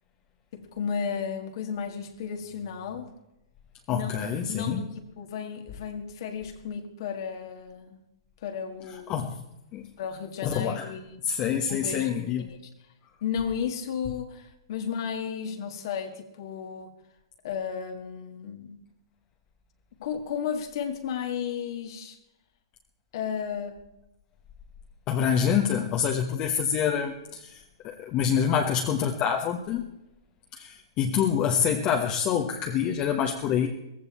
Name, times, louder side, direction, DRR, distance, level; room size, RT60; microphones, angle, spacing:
voice 1, 0.5-3.1 3.9-8.0 8.4-9.1 10.0-11.2 11.7-12.1 12.4-12.6 13.2-16.9 17.4-18.8 20.0-22.2 23.1-23.8, left 7 dB, 55° left, 1.9 m, -33 dB
voice 2, 3.9-4.8 9.1-9.4 9.7-9.8 10.4-10.9 11.2-12.5 25.1-29.9 30.5-33.7, left 8 dB, 35° left, 1.2 m, -26 dB
17.5 x 15.5 x 4.3 m
hypercardioid pair, 120°, 3 cm